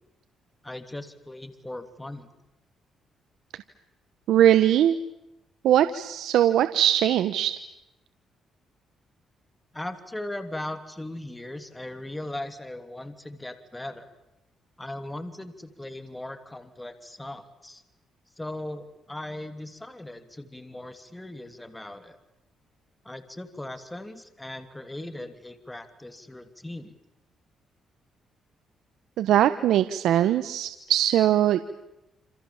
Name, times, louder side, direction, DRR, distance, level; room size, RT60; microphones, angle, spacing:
voice 1, 0.6-2.3 9.7-14.1 14.8-17.8 18.4-22.2 23.0-26.9, left 1 dB, 10° left, 9 dB, 2.9 m, -38 dB
voice 2, 4.3-5.0 5.6-7.5 29.2-31.7, right 11 dB, 80° right, 11 dB, 1.2 m, -21 dB
28.0 x 27.5 x 7.4 m, 0.91 s
cardioid pair, 90°, 0 cm